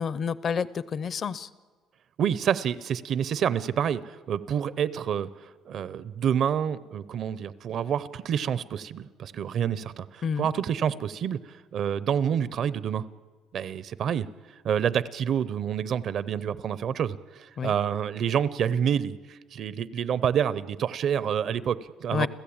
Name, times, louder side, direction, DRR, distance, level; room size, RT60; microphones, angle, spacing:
voice 1, 0.0-1.5 10.2-10.5 17.6-17.7 22.1-22.3, left 6 dB, 35° left, 18 dB, 0.6 m, -29 dB
voice 2, 2.2-13.0 13.5-14.3 14.6-22.3, right 8 dB, 50° right, 17 dB, 0.7 m, -28 dB
30.0 x 14.5 x 8.7 m, 1.5 s
cardioid pair, 160°, 0 cm